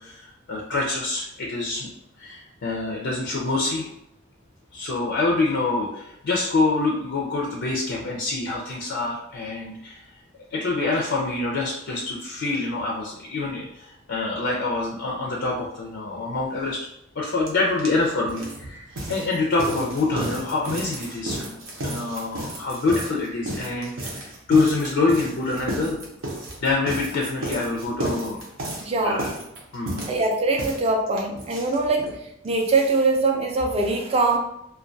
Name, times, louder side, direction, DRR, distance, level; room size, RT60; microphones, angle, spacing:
voice 1, 0.0-1.9 2.2-3.9 4.7-10.0 10.5-16.9 17.2-21.4 21.8-26.0 26.3-28.4 29.0-29.3 29.7-30.1, left 3 dB, 60° left, -2 dB, 0.4 m, -26 dB
sound 1, 17.5-17.6 17.8-32.2 32.5-32.6 32.8-32.9 33.2-33.3, right 1 dB, 75° right, 0.6 m, -33 dB
voice 2, 28.8-29.2 30.1-32.1 32.4-34.4, right 3 dB, 30° right, 2 dB, 0.4 m, -22 dB
2.2 x 2.2 x 2.5 m, 0.79 s
head